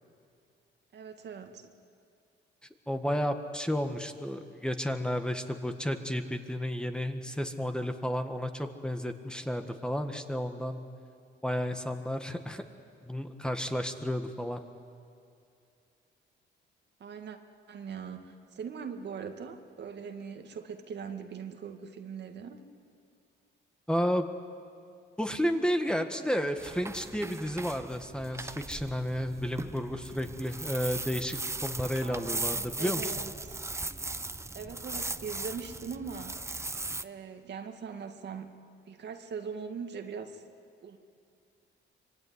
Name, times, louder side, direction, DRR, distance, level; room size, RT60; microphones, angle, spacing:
voice 1, 0.9-1.7 17.0-17.4 17.7-22.7 32.0-33.6 34.5-36.4 37.0-38.5 38.9-40.4 40.8-41.0, right 6 dB, 60° right, 5 dB, 2.0 m, -41 dB
voice 2, 2.9-10.8 11.4-12.6 13.0-14.6 23.9-24.3 25.2-33.0, equal, 5° left, 6 dB, 1.7 m, -32 dB
sound 1, 26.6-37.0, right 2 dB, 15° right, 0.7 m, -38 dB
25.5 x 22.5 x 9.7 m, 2.4 s
cardioid pair, 90°, 20 cm